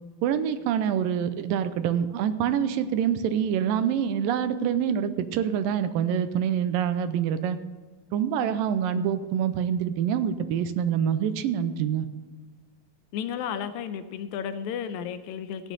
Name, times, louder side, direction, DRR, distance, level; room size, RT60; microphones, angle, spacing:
voice 1, 0.2-7.6 8.1-12.1, right 8 dB, 85° right, 11 dB, 2.4 m, -26 dB
voice 2, 13.1-15.7, left 8 dB, 85° left, 10 dB, 1.7 m, -33 dB
14.0 x 9.4 x 4.0 m, 1.4 s
omnidirectional pair, 3.9 m